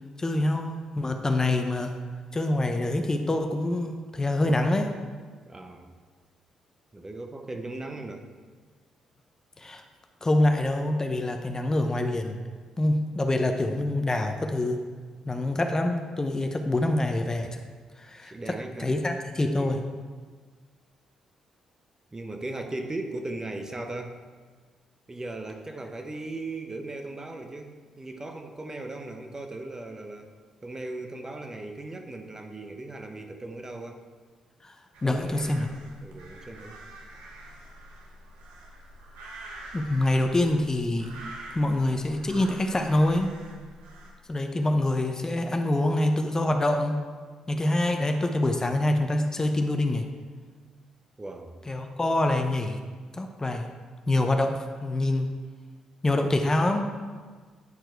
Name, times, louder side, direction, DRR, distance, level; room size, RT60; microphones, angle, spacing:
voice 1, 0.2-1.9 2.3-4.9 9.6-9.8 10.2-12.4 12.8-14.8 15.2-17.6 18.0-18.3 18.8-19.8 34.6-34.7 35.0-35.7 39.7-41.1 41.5-43.3 44.3-47.0 47.5-50.0 51.7-52.8 53.1-53.7 54.1-55.3 56.0-57.0, left 1 dB, 25° left, 5 dB, 0.8 m, -25 dB
voice 2, 5.4-6.0 6.9-8.3 18.2-18.9 19.5-19.8 22.1-24.2 25.1-30.3 30.6-34.0 35.0-35.8 36.0-36.8 51.2-51.5, right 2 dB, 25° right, 5 dB, 1.0 m, -38 dB
sound 1, 34.9-44.1, right 1 dB, 80° right, 1.1 m, -46 dB
9.7 x 4.5 x 4.6 m, 1.5 s
hypercardioid pair, 50°, 2 cm